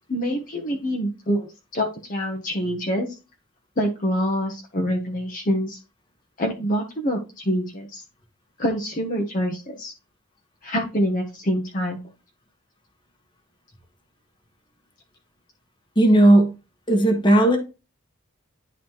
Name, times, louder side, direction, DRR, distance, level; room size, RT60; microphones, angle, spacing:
voice 1, 0.1-3.2 3.8-5.8 6.4-8.0 8.6-9.9 10.6-12.0, equal, 40° left, 0 dB, 1.0 m, -26 dB
voice 2, 15.9-16.5 16.9-17.6, right 1 dB, 20° left, 4 dB, 1.3 m, -15 dB
10.5 x 4.0 x 3.1 m, 0.30 s
head